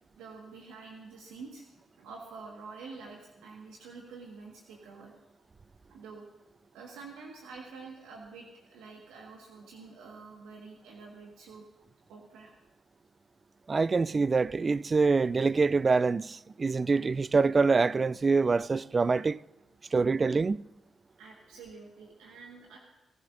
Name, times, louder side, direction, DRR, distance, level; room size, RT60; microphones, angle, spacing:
voice 1, 0.2-1.6 2.0-5.1 5.9-6.3 6.7-11.6 12.1-12.5 21.2-22.8, right 4 dB, 85° right, 1.6 m, -47 dB
voice 2, 13.7-19.4 19.9-20.6, right 4 dB, 40° right, 0.3 m, -25 dB
26.5 x 13.0 x 2.6 m
supercardioid pair, 50°, 0 cm